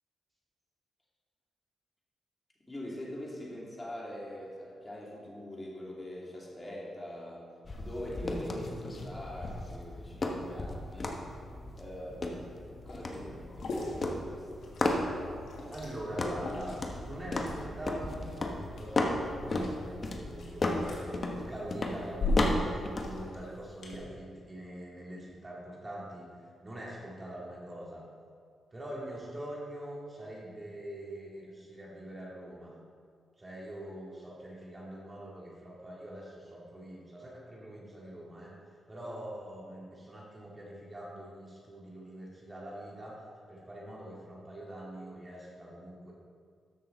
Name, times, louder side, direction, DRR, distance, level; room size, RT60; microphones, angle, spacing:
voice 1, 2.7-7.5 7.8-11.2 11.7-14.7, left 1 dB, 15° left, -4 dB, 2.7 m, -43 dB
sound 1, 7.7-23.3, left 2 dB, 40° left, 1.1 m, -35 dB
Liquid, 12.9-24.0, left 2 dB, 75° left, 1.9 m, -40 dB
voice 2, 15.7-16.8 17.0-18.3 18.6-28.0 28.7-32.7 33.4-38.5 38.9-46.1, right 1 dB, 25° right, -5 dB, 2.1 m, -44 dB
13.5 x 6.5 x 4.0 m, 2.2 s
cardioid pair, 95°, 0 cm